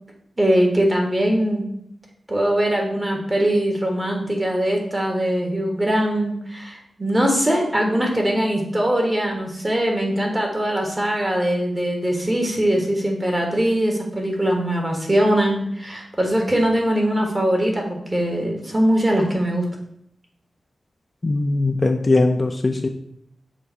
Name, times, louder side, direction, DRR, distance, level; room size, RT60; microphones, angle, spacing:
voice 1, 0.4-1.6 2.3-19.7, right 1 dB, 20° right, 1 dB, 1.4 m, -21 dB
voice 2, 21.2-22.9, left 2 dB, 30° left, 5 dB, 0.4 m, -20 dB
6.6 x 2.7 x 5.6 m, 0.72 s
wide cardioid pair, 110°, 0 cm